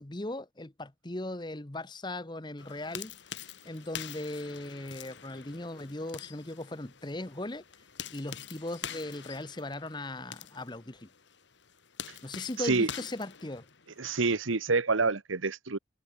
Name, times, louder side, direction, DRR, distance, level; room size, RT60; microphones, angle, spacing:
voice 1, 0.0-3.2 3.6-7.6 8.1-11.1 12.2-13.7, left 2 dB, 25° left, 1.0 m, -38 dB
sound 1, 2.6-14.0, left 8 dB, 65° left, 1.7 m, -45 dB
voice 2, 12.6-12.9 14.0-15.8, right 3 dB, 90° right, 1.3 m, -27 dB
head